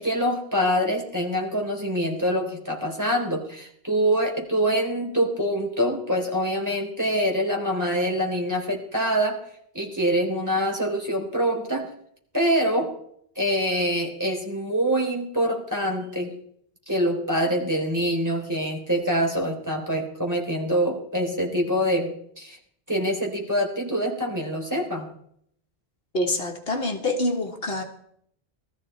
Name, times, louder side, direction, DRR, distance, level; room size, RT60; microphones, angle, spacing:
voice 1, 0.0-9.4 9.7-11.9 12.3-12.9 13.4-16.3 16.9-22.6 22.9-25.1, equal, 15° right, 3.9 m, -25 dB
voice 2, 26.1-27.8, left 1 dB, 70° left, 2.0 m, -26 dB
19.0 x 14.0 x 4.5 m
omnidirectional pair, 1.1 m